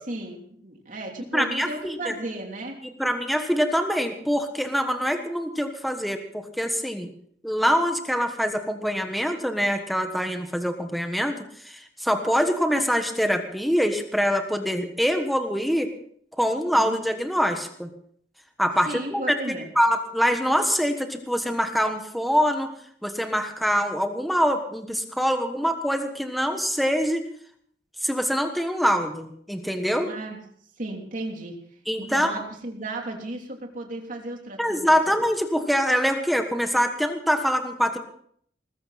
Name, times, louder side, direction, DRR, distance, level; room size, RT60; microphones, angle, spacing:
voice 1, 0.0-2.8 16.7-17.0 18.9-19.7 30.0-30.4 30.8-31.6 32.0-35.2, right 2 dB, 50° right, 1 dB, 3.2 m, -35 dB
voice 2, 1.3-2.1 3.0-7.1 7.4-11.4 11.6-15.9 16.4-17.9 18.6-19.3 19.7-22.7 23.0-27.2 28.0-30.1 31.9-32.3 34.6-38.0, equal, ahead, 5 dB, 1.3 m, -24 dB
20.5 x 14.5 x 4.2 m, 0.62 s
head